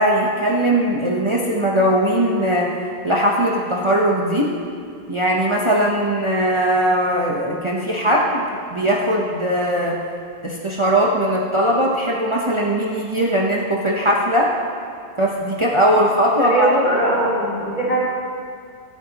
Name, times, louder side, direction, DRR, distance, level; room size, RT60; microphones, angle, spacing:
voice 1, 0.0-2.7 3.0-4.6 5.1-10.0 10.4-14.5 15.2-16.7, equal, 30° right, -3 dB, 1.1 m, -19 dB
voice 2, 16.4-18.0, right 1 dB, 40° left, -8 dB, 3.8 m, -20 dB
24.5 x 9.1 x 3.0 m, 2.3 s
omnidirectional pair, 1.1 m